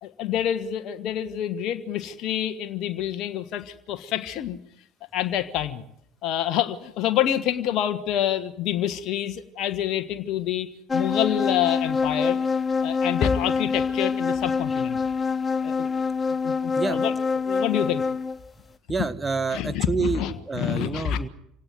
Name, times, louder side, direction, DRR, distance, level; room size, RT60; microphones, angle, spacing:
voice 1, 0.0-4.6 5.1-5.8 6.2-12.4 12.8-15.0 15.6-15.9 16.4-18.0 19.5-21.2, left 11 dB, 50° left, 8 dB, 1.4 m, -27 dB
sound 1, 10.9-18.4, left 5 dB, 25° left, 1.0 m, -25 dB
voice 2, 18.9-21.3, right 4 dB, 15° right, 13 dB, 1.6 m, -28 dB
26.5 x 17.5 x 9.3 m, 0.76 s
figure-of-eight pair, 65°, 0 cm